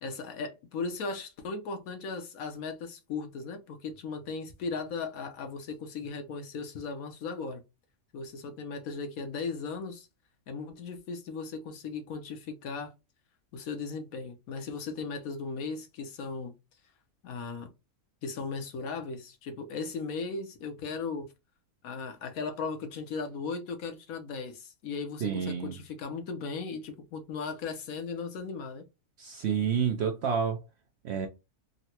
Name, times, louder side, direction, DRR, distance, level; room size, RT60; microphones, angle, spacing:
voice 1, 0.0-7.6 8.1-10.1 10.5-12.9 13.5-16.5 17.2-17.7 18.2-21.3 21.8-28.8, left 4 dB, 75° left, 1.2 m, -37 dB
voice 2, 25.2-25.7 29.2-30.6 31.0-31.3, right 7 dB, 65° right, 0.7 m, -29 dB
3.9 x 2.2 x 2.8 m
omnidirectional pair, 1.5 m